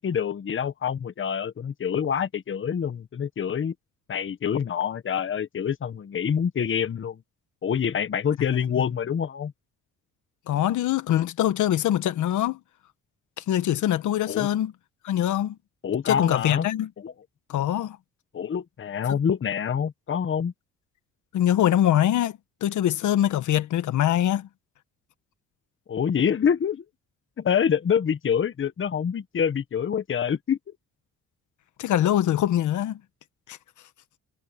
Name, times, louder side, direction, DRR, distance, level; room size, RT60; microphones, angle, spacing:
voice 1, 0.0-3.7 4.1-7.2 7.6-9.5 14.3-14.5 15.8-16.7 17.0-17.1 18.3-20.5 25.9-26.8 27.4-30.6, left 7 dB, 40° left, 1.3 m, -26 dB
voice 2, 10.5-12.6 13.4-14.7 15.0-15.6 16.1-16.9 17.5-18.0 19.1-19.2 21.3-24.5 31.8-33.0 33.5-33.6, left 12 dB, 75° left, 1.4 m, -23 dB
cardioid pair, 90°, 30 cm